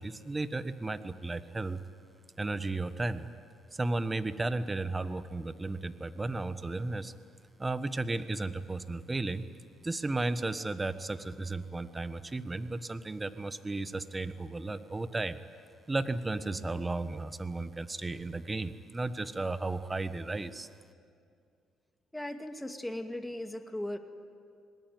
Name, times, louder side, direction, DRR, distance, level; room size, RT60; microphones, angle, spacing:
voice 1, 0.0-1.8 2.4-3.3 3.7-7.1 7.6-9.4 9.8-15.4 15.9-20.7, right 2 dB, 20° right, 12 dB, 1.3 m, -34 dB
voice 2, 22.1-24.0, left 1 dB, 10° left, 6 dB, 2.3 m, -37 dB
26.5 x 19.5 x 9.4 m, 2.3 s
supercardioid pair, 75°, 0 cm